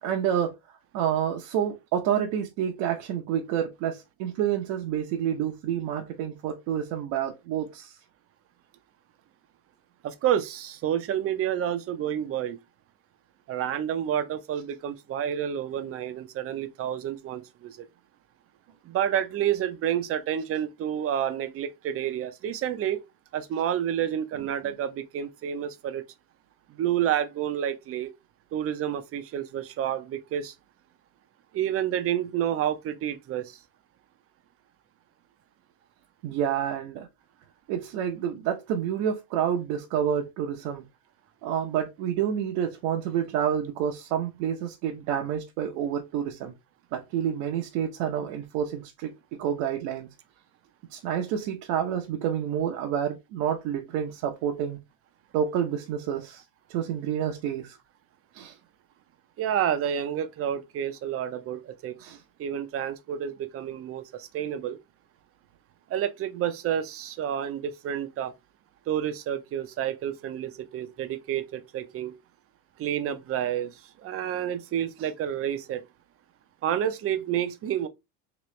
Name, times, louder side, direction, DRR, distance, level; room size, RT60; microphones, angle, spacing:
voice 1, 0.0-8.0 24.3-24.5 36.2-37.1 37.7-40.8 41.4-46.5 46.9-49.1 49.4-50.1 50.9-54.8 55.3-56.4 56.7-57.8 58.3-58.5 62.0-62.2, right 9 dB, 65° right, 0.8 m, -29 dB
voice 2, 10.0-12.6 13.5-17.9 18.8-23.0 23.3-26.0 26.7-28.1 28.5-30.5 31.5-33.6 59.4-62.0 62.4-64.8 65.9-68.3 68.9-72.1 72.8-75.8 76.6-77.9, right 10 dB, 35° right, 0.5 m, -29 dB
3.0 x 3.0 x 3.1 m
supercardioid pair, 120°, 44 cm